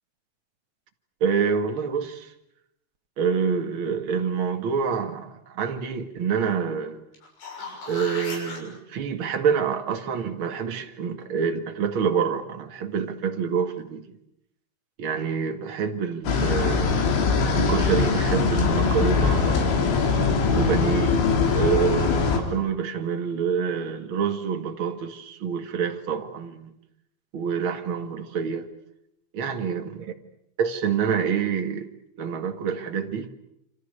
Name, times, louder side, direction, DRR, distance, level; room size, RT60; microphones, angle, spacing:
voice 1, 1.2-2.3 3.2-7.0 7.9-14.2 15.0-17.0 17.5-19.9 20.5-21.2 21.5-26.7 27.3-28.7 29.3-30.1 30.6-31.9 32.2-33.3, right 6 dB, 50° right, 1.6 m, -27 dB
sound 1, 7.1-8.6 13.4-13.5, left 3 dB, 65° left, 8.5 m, -36 dB
sound 2, 16.3-22.4, left 4 dB, 80° left, 5.8 m, -22 dB
29.0 x 26.5 x 6.7 m
omnidirectional pair, 5.2 m